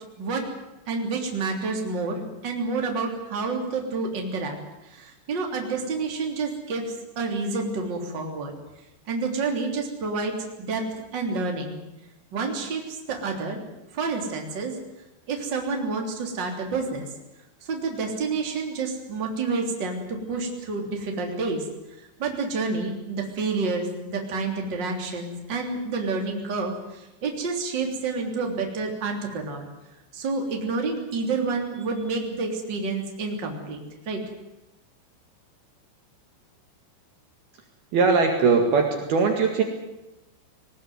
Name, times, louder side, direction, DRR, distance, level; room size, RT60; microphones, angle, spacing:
voice 1, 0.9-4.6 4.9-6.9 7.1-8.5 9.1-10.8 11.1-11.8 12.3-13.6 13.9-14.8 15.3-17.1 17.6-21.6 22.2-29.6 30.1-34.2, right 4 dB, 25° right, 2 dB, 3.3 m, -29 dB
voice 2, 37.9-39.6, right 4 dB, 60° right, 3 dB, 3.5 m, -20 dB
20.0 x 19.5 x 9.4 m, 0.97 s
omnidirectional pair, 5.6 m